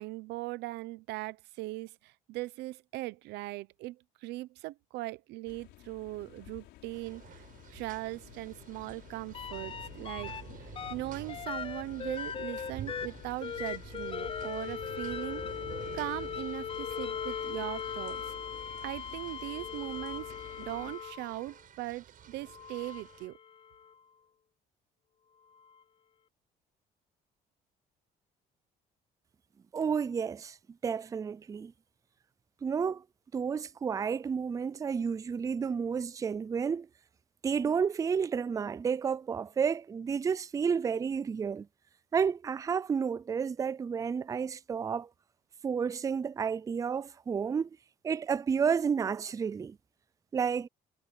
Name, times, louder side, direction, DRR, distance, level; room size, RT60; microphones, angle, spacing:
voice 1, 0.0-7.4 7.7-10.3 10.6-15.4 15.9-18.3 18.8-23.4, right 18 dB, 90° right, 0.9 m, -39 dB
sound 1, 5.5-21.0, left 16 dB, 85° left, 4.3 m, -52 dB
sound 2, 6.9-23.3, right 9 dB, 55° right, 6.6 m, -50 dB
sound 3, 9.3-10.4 10.8-21.5 22.4-23.9 25.7-25.8, left 7 dB, 30° left, 0.7 m, -39 dB
voice 2, 29.7-30.6 30.8-31.7 32.6-33.0 33.3-36.9 37.4-41.7 42.1-45.1 45.6-47.7 48.0-49.8 50.3-50.7, right 6 dB, 20° right, 0.3 m, -31 dB
cardioid pair, 110°, 17 cm